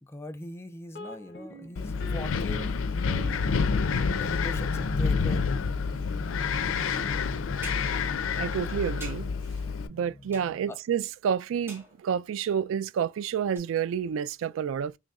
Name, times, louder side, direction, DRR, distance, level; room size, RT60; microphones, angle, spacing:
voice 1, 0.0-2.8 4.2-5.5 10.7-10.8, left 1 dB, 15° left, 0.3 m, -41 dB
sound 1, 0.9-10.7, equal, 60° left, 0.7 m, -41 dB
Wind, 1.8-9.9, left 5 dB, 90° left, 0.4 m, -28 dB
sound 2, 7.6-8.0 9.0-9.3 10.3-10.8 11.7-12.1 13.6-13.7, right 2 dB, 10° right, 1.3 m, -45 dB
voice 2, 8.4-9.3 9.9-14.9, right 7 dB, 90° right, 0.3 m, -29 dB
4.0 x 3.1 x 2.3 m
head